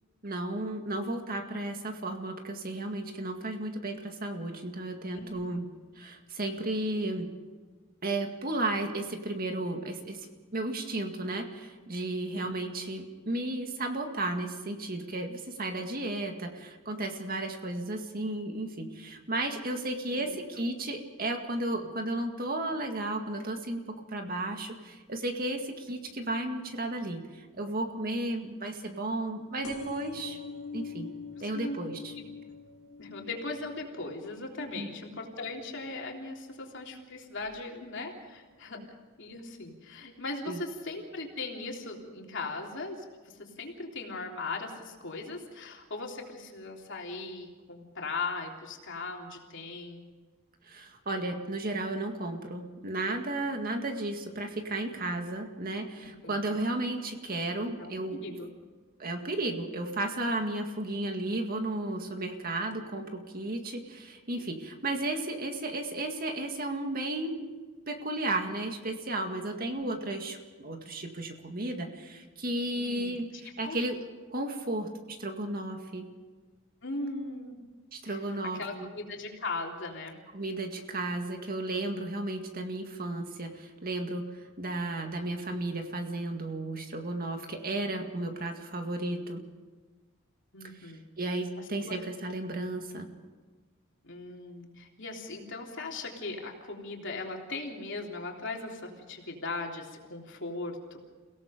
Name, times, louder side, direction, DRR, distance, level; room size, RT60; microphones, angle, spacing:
voice 1, 0.2-5.7 6.0-7.3 8.0-30.4 30.7-31.1 31.4-32.1 34.8-34.9 38.8-38.9 40.5-40.6 50.7-58.4 59.0-67.5 67.9-74.0 74.3-76.1 77.9-78.9 80.3-84.3 84.6-89.5 90.8-93.1, right 2 dB, 45° right, 4 dB, 2.0 m, -34 dB
voice 2, 5.1-5.7 12.4-12.5 20.0-20.4 31.5-31.8 32.2-32.3 33.0-38.8 39.2-50.0 56.0-56.5 57.8-58.5 69.6-69.9 72.7-73.8 76.8-77.6 78.1-78.2 78.6-80.2 90.5-91.1 91.6-91.9 94.0-101.0, left 3 dB, 60° left, 0 dB, 3.5 m, -39 dB
sound 1, 29.6-36.9 37.4-37.8 38.7-38.8 39.0-39.1 39.3-39.4, left 4 dB, 90° left, 4.1 m, -45 dB
29.5 x 17.5 x 5.2 m, 1.4 s
head